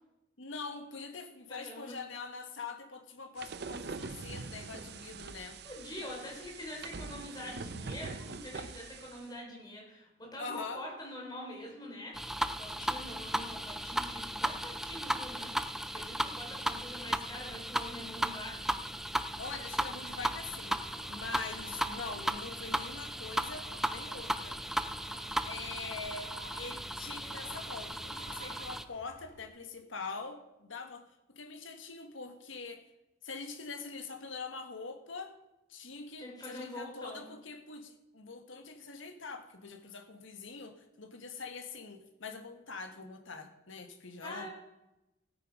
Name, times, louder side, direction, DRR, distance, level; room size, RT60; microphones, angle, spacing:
voice 1, 0.4-5.6 10.4-10.8 19.4-20.8 21.1-24.6 25.4-32.8 33.2-35.3 35.7-44.5, left 4 dB, 80° left, 6 dB, 1.5 m, -44 dB
voice 2, 1.5-1.9 5.6-15.7 15.9-18.7 21.4-21.5 36.2-37.2 44.2-44.5, left 1 dB, 20° left, -1 dB, 3.7 m, -45 dB
sound 1, 3.4-9.3, right 4 dB, 55° right, 0.7 m, -43 dB
sound 2, 12.1-28.8, right 1 dB, ahead, 0.4 m, -36 dB
sound 3, 20.0-29.4, right 3 dB, 75° right, 2.4 m, -52 dB
16.0 x 8.6 x 5.3 m, 0.94 s
head